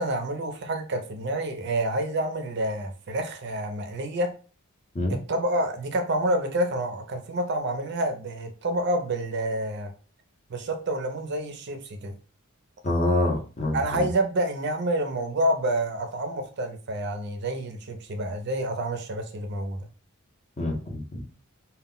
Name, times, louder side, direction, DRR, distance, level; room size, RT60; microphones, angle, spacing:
voice 1, 0.0-4.3 5.1-9.9 10.5-12.1 13.7-19.8, right 1 dB, 50° right, 6 dB, 0.4 m, -28 dB
voice 2, 12.8-14.0 20.6-21.2, left 1 dB, 30° left, 1 dB, 0.6 m, -26 dB
2.2 x 2.0 x 3.6 m, 0.37 s
head